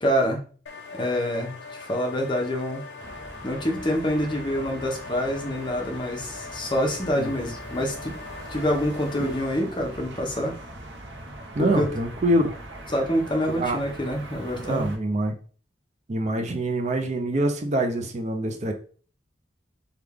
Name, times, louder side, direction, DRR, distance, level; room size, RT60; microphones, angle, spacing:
voice 1, 0.0-0.4 0.9-2.8 3.4-8.2 8.5-10.5 11.6-11.9 12.9-14.9, equal, 25° left, 1 dB, 0.7 m, -26 dB
sound 1, 0.7-9.6, left 4 dB, 80° left, 0.6 m, -42 dB
sound 2, 3.0-15.0, right 1 dB, 90° right, 0.8 m, -41 dB
voice 2, 7.1-7.5 9.2-9.3 11.5-12.5 13.5-13.8 14.6-15.4 16.1-18.7, right 1 dB, 40° right, 5 dB, 0.5 m, -25 dB
3.3 x 2.3 x 3.4 m, 0.40 s
head